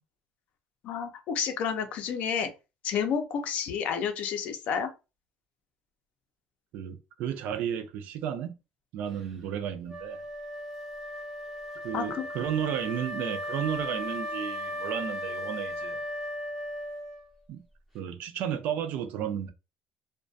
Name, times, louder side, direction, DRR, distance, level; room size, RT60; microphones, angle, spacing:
voice 1, 0.8-2.5 2.8-4.9 11.9-12.3, left 7 dB, 45° left, 0.5 m, -30 dB
voice 2, 6.7-8.5 8.9-10.2 11.8-16.0 17.5-17.6 17.9-19.5, right 9 dB, 55° right, 0.4 m, -33 dB
Wind instrument woodwind instrument, 9.9-17.5, left 1 dB, 5° right, 0.5 m, -36 dB
2.4 x 2.1 x 2.5 m
cardioid pair, 180°, 3 cm